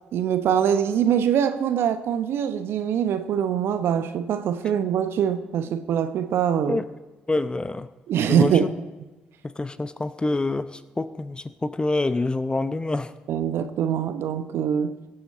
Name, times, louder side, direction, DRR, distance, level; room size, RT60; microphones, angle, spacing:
voice 1, 0.1-6.8 8.1-8.7 13.3-15.0, right 9 dB, 60° right, 10 dB, 0.8 m, -23 dB
voice 2, 7.3-7.9 8.3-8.6 9.4-13.1, left 2 dB, 20° left, 13 dB, 0.7 m, -26 dB
22.0 x 9.0 x 4.2 m, 1.1 s
figure-of-eight pair, 45°, 4 cm